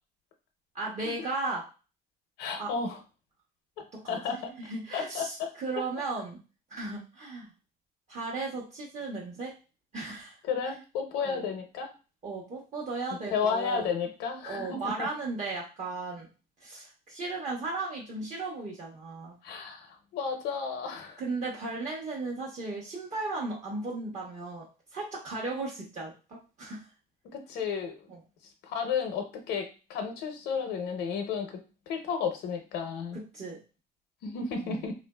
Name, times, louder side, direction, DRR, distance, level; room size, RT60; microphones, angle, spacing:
voice 1, 0.7-1.7 2.6-2.7 3.9-6.4 6.7-7.5 8.1-9.5 9.9-10.3 11.2-11.4 12.2-13.9 14.4-16.3 16.6-19.3 21.2-24.7 24.9-26.8 28.1-28.2 33.1-33.6 34.6-34.8, right 3 dB, 45° right, -3 dB, 0.9 m, -36 dB
voice 2, 2.4-3.0 4.1-4.5 4.9-5.5 10.5-11.9 13.1-15.1 19.4-21.2 27.3-27.9 28.6-31.5 31.9-33.2 34.2-34.9, left 6 dB, 85° left, 5 dB, 0.6 m, -32 dB
3.0 x 2.5 x 2.2 m, 0.33 s
cardioid pair, 110°, 17 cm